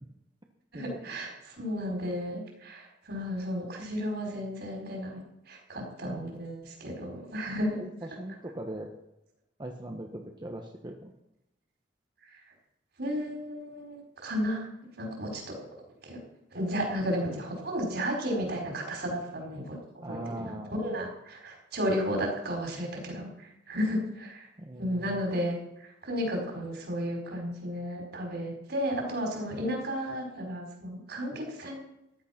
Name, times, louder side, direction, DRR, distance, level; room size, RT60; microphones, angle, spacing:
voice 1, 0.7-7.8 13.0-14.7 15.0-15.6 16.0-16.2 16.5-24.5 24.8-31.8, equal, 60° right, 1 dB, 4.9 m, -33 dB
voice 2, 5.8-6.3 7.8-8.9 9.6-11.1 20.0-21.0 24.6-25.2, right 1 dB, 25° right, 2 dB, 1.2 m, -40 dB
14.5 x 11.5 x 5.9 m, 0.86 s
head